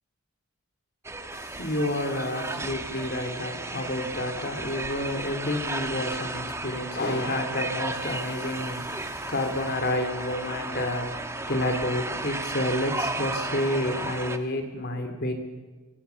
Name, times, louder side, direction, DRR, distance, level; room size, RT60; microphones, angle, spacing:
sound 1, 1.0-14.4, right 2 dB, 15° right, 1.2 m, -34 dB
voice 1, 1.3-15.3, left 1 dB, 50° left, 5 dB, 3.0 m, -30 dB
25.0 x 22.5 x 7.0 m, 1.3 s
head